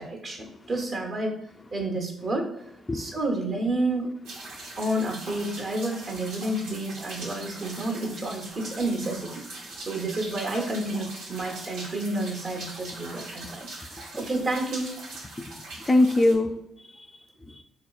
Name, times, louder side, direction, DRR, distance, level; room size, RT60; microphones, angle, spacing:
voice 1, 0.0-1.4 1.7-2.5 2.9-4.1 4.8-9.3 9.8-14.9, right 2 dB, 45° right, 2 dB, 0.9 m, -30 dB
sound 1, 4.2-16.3, right 2 dB, 85° right, 0.8 m, -41 dB
voice 2, 15.9-17.6, left 2 dB, 25° left, 7 dB, 0.3 m, -24 dB
3.8 x 2.8 x 2.4 m, 0.82 s
supercardioid pair, 55°, 0 cm